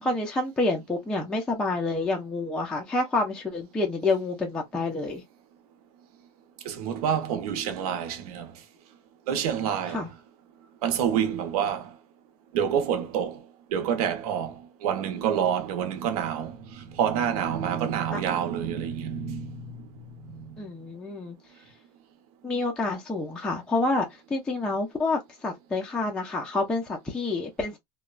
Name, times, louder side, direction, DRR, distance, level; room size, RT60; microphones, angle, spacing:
voice 1, 0.0-5.2 9.9-10.1 18.1-18.2 20.6-21.4 22.4-27.8, left 2 dB, 5° left, 0.4 m, -28 dB
voice 2, 6.6-8.5 9.3-10.1 10.8-11.9 12.5-13.4 13.7-19.9 20.2-20.5, right 8 dB, 70° right, 0.8 m, -28 dB
3.0 x 2.1 x 2.3 m
supercardioid pair, 160°, 20 cm